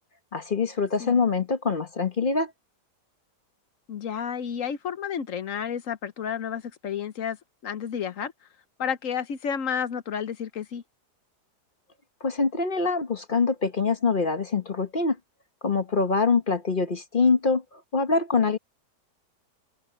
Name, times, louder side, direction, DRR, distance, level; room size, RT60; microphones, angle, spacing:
voice 1, 0.3-2.5 12.2-15.2 15.6-18.6, left 4 dB, 35° left, 1.0 m, -24 dB
voice 2, 3.9-7.4 7.6-8.3 8.8-10.8, left 8 dB, 55° left, 1.1 m, -31 dB
open air
omnidirectional pair, 1.8 m